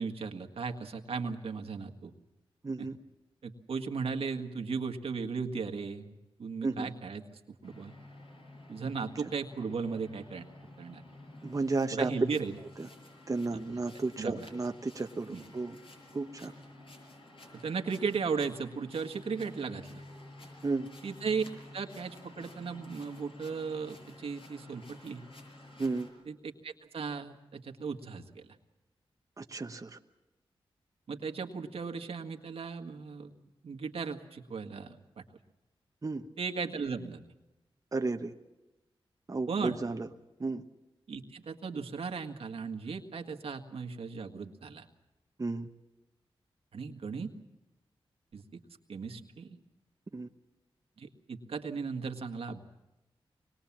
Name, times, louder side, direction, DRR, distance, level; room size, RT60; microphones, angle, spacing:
voice 1, 0.0-2.1 2.8-2.9 3.4-7.2 7.6-7.9 8.7-10.5 10.8-11.0 11.9-12.5 14.2-14.5 15.3-15.4 17.5-20.0 21.0-21.4 21.7-25.2 26.3-28.6 31.1-33.3 33.6-35.2 36.4-37.2 39.5-39.8 41.1-44.9 46.7-47.3 48.3-48.6 48.9-49.6 51.0-52.6, right 5 dB, 80° right, 4 dB, 1.8 m, -36 dB
voice 2, 2.6-3.0 6.6-6.9 11.4-12.1 13.3-15.8 16.1-16.5 20.6-20.9 25.8-26.1 29.4-30.0 36.0-36.3 37.9-38.3 39.3-40.1 40.4-40.6 45.4-45.7 50.1-50.3, right 3 dB, 35° right, 4 dB, 1.0 m, -33 dB
sound 1, 7.6-26.1, left 2 dB, 60° left, 6.9 m, -51 dB
24.5 x 21.0 x 7.3 m, 1.0 s
cardioid pair, 65°, 10 cm